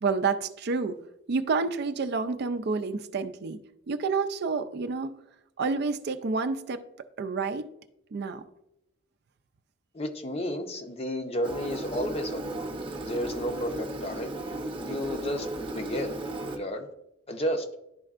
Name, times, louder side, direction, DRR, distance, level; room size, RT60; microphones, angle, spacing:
voice 1, 0.0-1.0 1.3-3.6 3.9-5.2 5.6-6.8 7.2-7.7 8.1-8.4, right 4 dB, 55° right, 9 dB, 0.4 m, -29 dB
voice 2, 9.9-12.7 13.0-14.3 14.9-16.2 16.5-16.9 17.3-17.6, equal, 30° left, 5 dB, 0.7 m, -32 dB
Engine, 11.4-16.6, right 2 dB, 25° right, 0.8 m, -35 dB
11.0 x 4.3 x 2.4 m, 0.85 s
head